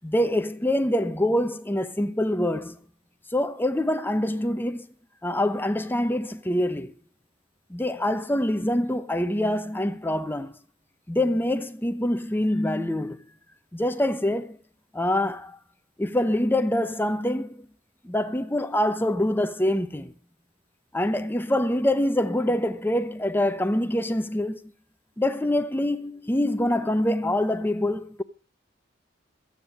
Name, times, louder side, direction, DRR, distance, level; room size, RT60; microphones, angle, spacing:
voice 1, 0.0-2.8 3.3-4.9 5.2-6.9 7.7-10.6 11.1-13.2 13.7-14.6 14.9-15.6 16.0-17.7 18.0-20.1 20.9-24.6 25.2-28.2, left 1 dB, 10° left, 0.8 m, -25 dB
14.5 x 9.5 x 6.6 m
head